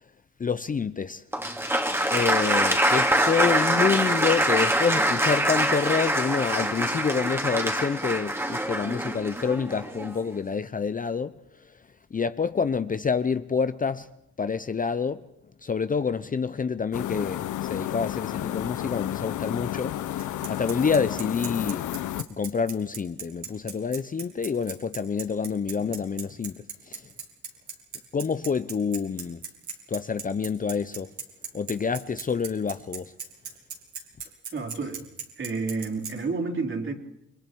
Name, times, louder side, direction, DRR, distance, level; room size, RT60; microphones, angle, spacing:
voice 1, 0.4-1.2 2.1-11.4 12.1-14.1 14.4-15.2 15.6-21.9 22.3-27.0 28.1-29.4 29.9-31.1 31.5-33.1, left 5 dB, 25° left, 0.7 m, -27 dB
Applause, 1.3-10.3, right 1 dB, 10° right, 2.5 m, -24 dB
sound 1, 16.9-22.2, left 13 dB, 75° left, 0.9 m, -31 dB
Bicycle, 20.2-36.1, right 6 dB, 70° right, 4.2 m, -37 dB
voice 2, 34.5-35.1 35.4-36.9, right 4 dB, 40° right, 4.1 m, -30 dB
29.5 x 22.0 x 4.7 m
cardioid pair, 90°, 30 cm